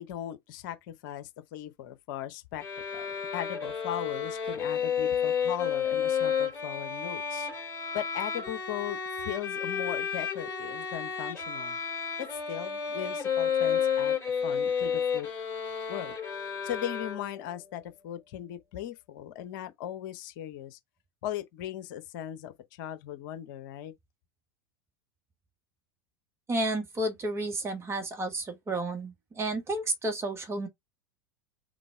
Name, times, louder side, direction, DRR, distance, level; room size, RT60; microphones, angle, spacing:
voice 1, 0.0-2.6 2.9-3.1 3.3-7.5 7.9-11.8 12.2-14.2 14.4-15.3 15.9-16.2 16.6-20.8 21.2-23.9, left 11 dB, 55° left, 0.9 m, -38 dB
sound 1, 2.6-17.6, left 7 dB, 20° left, 2.9 m, -31 dB
voice 2, 26.5-30.7, right 2 dB, 20° right, 1.5 m, -31 dB
3.9 x 3.8 x 3.5 m
figure-of-eight pair, 85°, 12 cm